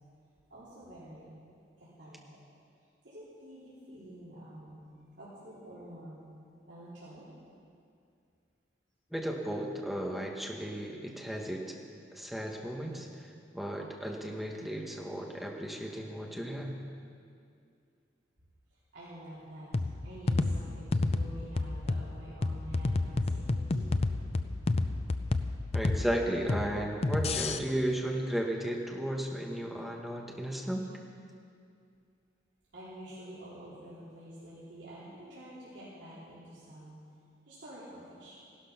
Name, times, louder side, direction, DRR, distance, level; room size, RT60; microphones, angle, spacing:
voice 1, 0.5-1.3 1.8-2.2 3.0-6.2 6.7-7.2 18.9-19.7 20.0-24.1 32.7-37.0 37.5-38.4, right 1 dB, 70° right, -11 dB, 3.9 m, -48 dB
voice 2, 9.1-11.7 12.1-13.3 13.5-16.8 25.7-30.9, right 1 dB, ahead, 0 dB, 1.4 m, -34 dB
sound 1, 19.7-27.6, left 2 dB, 35° left, 0.5 m, -31 dB
16.0 x 12.5 x 5.8 m, 2.4 s
head